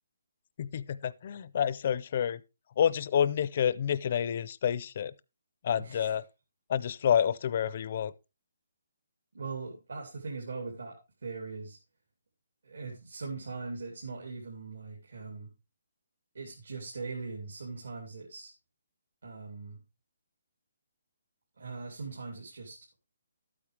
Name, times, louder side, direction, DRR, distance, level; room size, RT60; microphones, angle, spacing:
voice 1, 0.6-2.4 2.8-5.1 5.6-6.2 6.7-8.1, left 8 dB, 30° left, 0.4 m, -28 dB
voice 2, 5.8-6.1 9.3-11.8 12.6-15.5 16.3-18.5 19.2-19.8 21.6-22.8, right 4 dB, 75° right, 2.9 m, -40 dB
12.0 x 8.7 x 3.3 m
hypercardioid pair, 175°, 0 cm